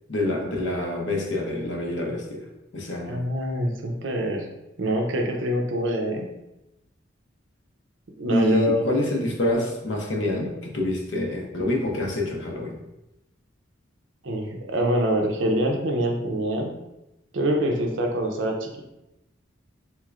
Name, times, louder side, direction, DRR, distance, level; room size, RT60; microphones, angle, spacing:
voice 1, 0.1-2.4 2.7-3.1 8.3-12.8, left 1 dB, 70° left, 1 dB, 0.7 m, -26 dB
voice 2, 3.1-4.5 4.8-6.3 8.2-8.8 14.2-16.7 17.3-18.8, right 1 dB, 75° right, 2 dB, 0.6 m, -25 dB
3.5 x 3.1 x 2.4 m, 0.92 s
head